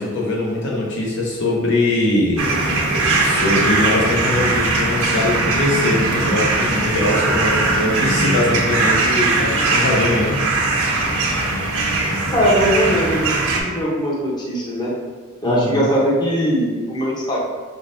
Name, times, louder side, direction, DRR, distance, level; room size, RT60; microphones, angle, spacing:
voice 1, 0.0-2.8 3.2-10.4 15.4-15.8, left 1 dB, 55° left, -3 dB, 0.8 m, -21 dB
sound 1, 2.4-13.6, right 2 dB, 85° right, 0.8 m, -20 dB
voice 2, 12.3-14.9 15.4-17.4, equal, 20° left, -6 dB, 0.8 m, -20 dB
5.1 x 3.7 x 2.6 m, 1.5 s
head